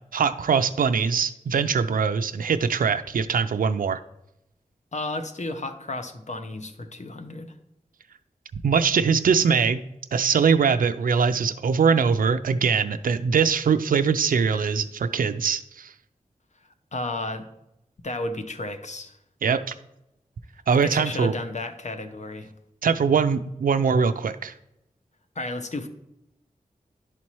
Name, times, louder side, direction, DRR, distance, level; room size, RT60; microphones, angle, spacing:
voice 1, 0.1-4.0 8.6-9.8 10.1-15.9 19.4-19.7 20.7-21.3 22.8-24.5, right 6 dB, 75° right, 10 dB, 0.4 m, -22 dB
voice 2, 4.9-7.5 16.9-17.5 18.0-19.2 20.7-22.5 25.4-25.9, left 2 dB, 55° left, 8 dB, 0.8 m, -32 dB
11.0 x 4.2 x 3.0 m, 0.85 s
wide cardioid pair, 55°, 14 cm